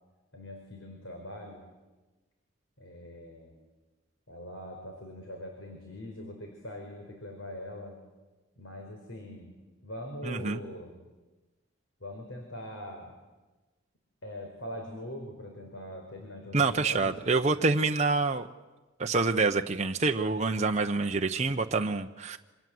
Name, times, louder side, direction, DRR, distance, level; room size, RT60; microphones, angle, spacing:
voice 1, 0.3-1.6 2.8-3.5 4.3-8.0 8.6-9.5 9.8-11.0 12.0-13.1 14.2-17.5, left 1 dB, 75° left, 2 dB, 4.6 m, -42 dB
voice 2, 10.2-10.6 16.5-18.5 19.0-22.4, right 3 dB, 35° right, 4 dB, 0.8 m, -27 dB
28.5 x 26.0 x 7.8 m, 1.2 s
head